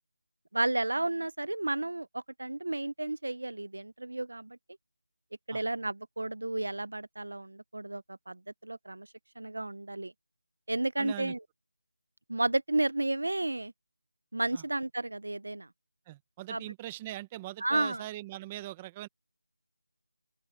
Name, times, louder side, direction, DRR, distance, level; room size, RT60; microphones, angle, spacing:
voice 1, 0.5-4.6 5.5-9.1 9.4-10.1 10.7-11.4 12.3-13.7 14.3-15.7 16.5-16.6 17.6-18.0, right 2 dB, 85° right, 1.0 m, -32 dB
voice 2, 11.0-11.3 14.5-14.6 16.1-19.1, right 15 dB, 10° right, 1.2 m, -41 dB
open air
figure-of-eight pair, 175°, 0 cm